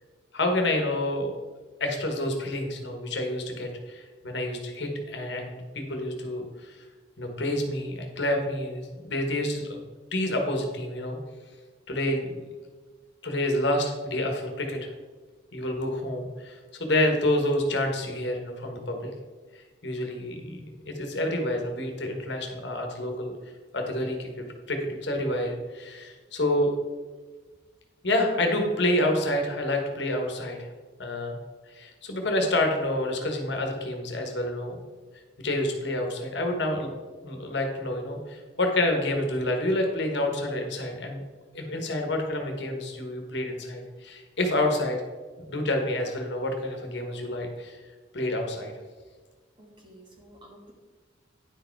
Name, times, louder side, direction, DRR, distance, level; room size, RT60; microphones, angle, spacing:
voice 1, 0.3-1.3 1.8-6.8 7.2-9.8 10.1-11.2 11.9-12.3 13.2-14.9 15.5-19.1 19.8-23.3 23.7-26.8 28.0-30.7 31.0-31.4 31.7-34.8 35.4-36.9 37.2-41.2 41.5-45.0 45.4-47.8 48.1-48.7, left 1 dB, 60° left, 3 dB, 1.3 m, -28 dB
voice 2, 49.6-50.7, right 1 dB, 25° right, -1 dB, 1.4 m, -51 dB
9.8 x 4.8 x 4.6 m, 1.4 s
head